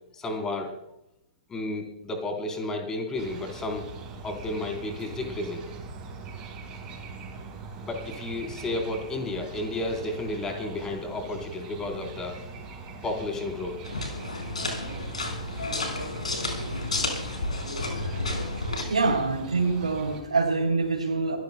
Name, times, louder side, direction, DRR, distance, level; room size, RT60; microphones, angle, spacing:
voice 1, 0.2-0.7 1.5-3.8 4.2-5.6 7.8-12.4 13.0-13.8 17.4-17.5, left 2 dB, 15° left, 3 dB, 3.8 m, -32 dB
sound 1, 3.2-20.2, right 4 dB, 20° right, 5.1 m, -42 dB
sound 2, 13.8-18.8, left 2 dB, 70° left, 4.8 m, -31 dB
voice 2, 18.8-21.4, right 3 dB, 75° right, -3 dB, 3.3 m, -25 dB
25.0 x 16.5 x 2.3 m, 0.82 s
figure-of-eight pair, 115°, 4 cm